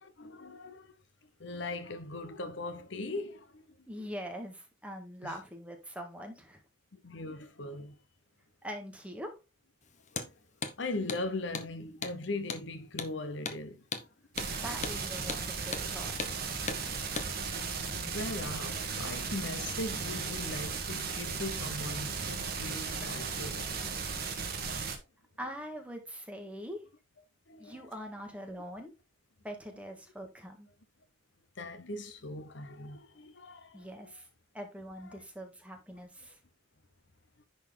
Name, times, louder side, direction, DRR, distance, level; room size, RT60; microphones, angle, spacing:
voice 1, 0.0-0.9 1.4-4.1 5.2-5.4 6.9-8.0 10.1-10.3 10.8-14.1 17.9-23.8 24.8-24.9 27.5-28.0 31.6-34.2 35.0-35.2, left 2 dB, 65° left, 0.9 m, -40 dB
voice 2, 3.9-6.6 8.6-9.3 14.6-16.4 25.4-26.8 27.6-28.9 29.4-30.7 33.7-34.3 34.5-36.4, equal, 5° right, 1.6 m, -43 dB
Hammer, 10.1-10.3 10.6-10.8 11.1-11.2 11.5-11.7 12.0-12.2 12.5-12.6 13.0-13.1 13.5-13.6 13.9-14.1 14.4-14.5 14.8-15.0 15.3-15.4 15.7-15.9 16.2-16.3 16.7-16.8 17.2-17.3, left 5 dB, 40° left, 0.9 m, -36 dB
sound 1, 14.3-25.0, right 5 dB, 50° right, 1.6 m, -36 dB
10.5 x 4.2 x 3.8 m
head